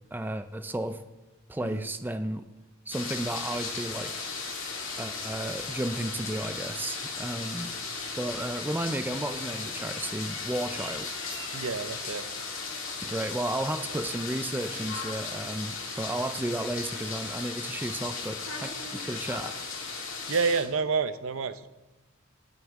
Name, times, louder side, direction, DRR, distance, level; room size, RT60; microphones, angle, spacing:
voice 1, 0.1-1.0 1.5-2.5 2.9-4.2 5.0-7.7 8.2-11.1 13.0-19.5, right 1 dB, 10° right, 9 dB, 0.4 m, -33 dB
sound 1, 2.9-20.7, left 4 dB, 60° left, 2.5 m, -36 dB
voice 2, 11.5-12.2 20.3-21.7, right 5 dB, 65° right, 11 dB, 0.7 m, -29 dB
20.5 x 6.9 x 3.7 m, 1.1 s
head